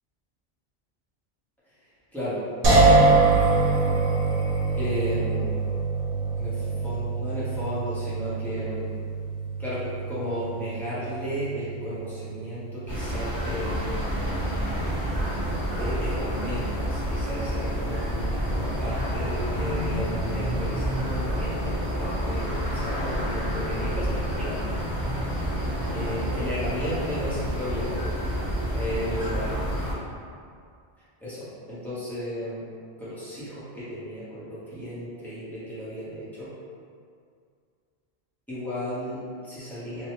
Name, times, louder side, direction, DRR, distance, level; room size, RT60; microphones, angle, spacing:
voice 1, 2.1-2.5 4.8-5.5 6.4-8.9 9.6-13.9 15.7-24.1 24.3-24.7 25.3-25.6 25.9-28.0 28.7-29.6 31.2-32.6 33.0-36.5 38.5-40.1, equal, ahead, -12 dB, 1.0 m, -34 dB
sound 1, 2.6-15.7, right 3 dB, 65° right, 0.9 m, -25 dB
sound 2, 12.9-29.9, equal, 35° left, 1.2 m, -28 dB
3.4 x 2.2 x 3.0 m, 2.3 s
omnidirectional pair, 1.1 m